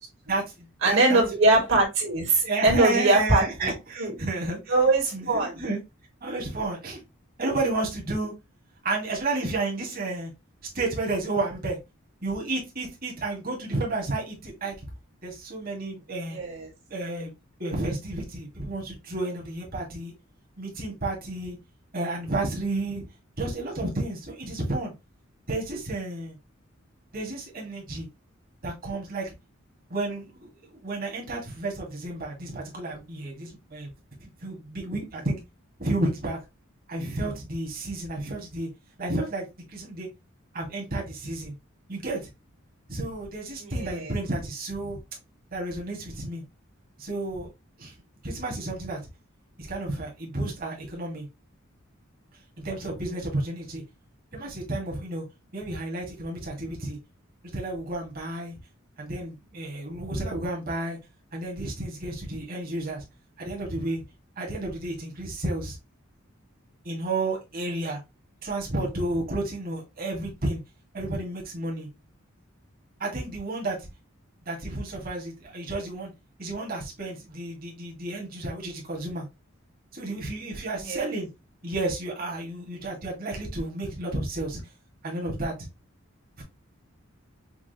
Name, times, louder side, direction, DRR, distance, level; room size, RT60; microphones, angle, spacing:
voice 1, 0.3-1.2 2.4-4.7 5.1-5.8 6.2-7.0 7.4-8.3 8.8-10.3 10.7-11.8 12.2-14.7 15.2-16.4 16.9-17.3 17.6-20.1 20.6-21.6 21.9-23.0 23.4-24.9 25.5-26.4 27.1-28.1 28.6-29.3 29.9-33.9 34.2-35.4 35.8-36.4 36.9-38.7 39.0-40.1 40.5-41.5 41.9-42.2 42.9-45.0 45.5-46.4 47.0-47.5 47.8-47.9 48.2-49.0 49.6-51.3 52.6-53.8 54.3-55.2 55.5-57.0 57.5-58.6 59.0-61.0 61.3-63.0 63.4-64.0 64.4-65.8 66.8-68.0 68.4-70.6 70.9-71.9 73.0-73.8 74.4-76.1 76.4-79.3 79.9-81.3 81.6-84.6 85.0-85.5 86.4-86.5, right 2 dB, 45° right, 1.6 m, -31 dB
voice 2, 0.8-3.7 4.0-4.2 4.7-5.6 16.3-16.7 43.6-44.2 80.8-81.0, right 2 dB, 65° right, 2.2 m, -22 dB
5.8 x 2.4 x 2.8 m
head